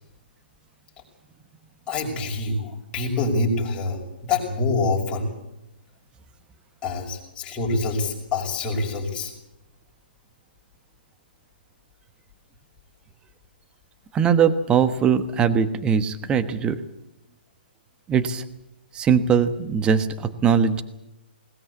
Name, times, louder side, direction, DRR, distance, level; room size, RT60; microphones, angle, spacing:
voice 1, 1.9-5.3 6.8-9.3, left 3 dB, 20° left, -1 dB, 6.1 m, -26 dB
voice 2, 14.1-16.8 18.1-18.4 18.9-20.8, right 7 dB, 15° right, 12 dB, 1.2 m, -21 dB
20.5 x 19.5 x 8.3 m, 0.90 s
hypercardioid pair, 135°, 6 cm